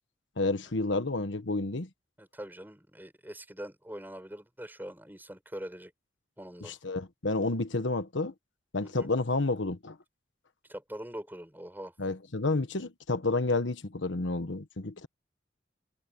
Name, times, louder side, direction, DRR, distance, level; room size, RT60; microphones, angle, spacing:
voice 1, 0.4-1.9 6.6-8.3 8.7-10.0 12.0-15.1, left 2 dB, 80° left, 1.2 m, -30 dB
voice 2, 2.2-5.9 6.4-6.8 8.8-9.1 10.7-11.9, equal, 10° right, 6.3 m, -43 dB
head